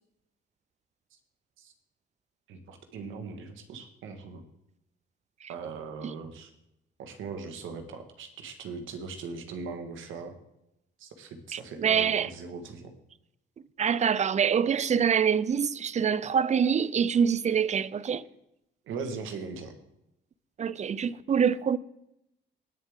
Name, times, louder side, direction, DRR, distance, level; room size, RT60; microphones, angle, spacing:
voice 1, 2.5-4.4 5.5-6.5 7.0-10.4 11.0-12.9 18.9-19.7, right 4 dB, 85° right, 1.5 m, -40 dB
voice 2, 11.5-12.3 13.8-18.3 20.6-21.8, right 7 dB, 35° right, 0.5 m, -25 dB
19.0 x 7.1 x 3.6 m
cardioid pair, 90°, 20 cm